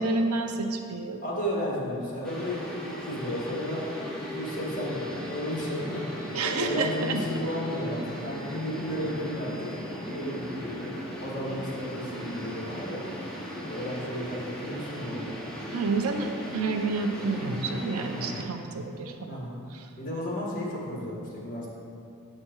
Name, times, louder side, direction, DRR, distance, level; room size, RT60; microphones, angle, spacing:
voice 1, 0.0-1.2 6.3-7.2 15.7-19.4 19.7-19.8, right 3 dB, 75° right, 5 dB, 0.6 m, -29 dB
voice 2, 1.2-6.0 6.4-9.7 10.1-10.9 11.2-13.0 13.7-15.3 17.9-18.4 19.3-19.6 20.0-21.7, equal, 40° left, -5 dB, 1.7 m, -33 dB
sound 1, 2.2-18.4, equal, 5° left, 1.0 m, -37 dB
7.6 x 7.3 x 3.1 m, 2.4 s
head